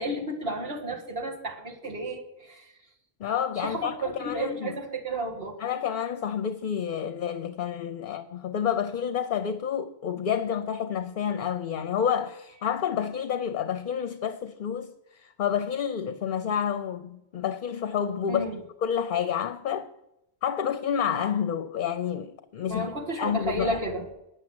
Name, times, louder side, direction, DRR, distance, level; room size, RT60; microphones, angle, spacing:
voice 1, 0.0-2.7 3.6-5.5 18.3-18.6 22.7-24.1, right 1 dB, 65° right, 2.4 m, -32 dB
voice 2, 3.2-4.8 5.6-18.4 18.8-19.9 20.4-22.9 23.2-23.8, left 8 dB, 55° left, 0.7 m, -29 dB
9.6 x 7.2 x 7.8 m
omnidirectional pair, 1.1 m